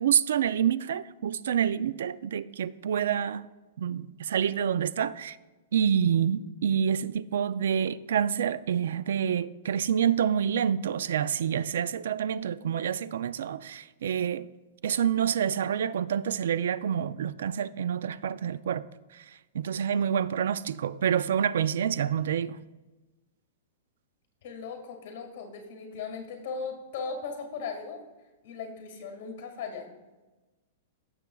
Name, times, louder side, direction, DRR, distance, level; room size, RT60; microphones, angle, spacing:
voice 1, 0.0-3.4 3.8-5.4 5.7-14.5 14.8-18.9 19.1-19.2 19.5-22.6, right 8 dB, 75° right, 0.3 m, -27 dB
voice 2, 24.4-28.0 28.4-29.9, left 5 dB, 50° left, 1.9 m, -38 dB
15.0 x 6.8 x 2.3 m
supercardioid pair, 170°, 0 cm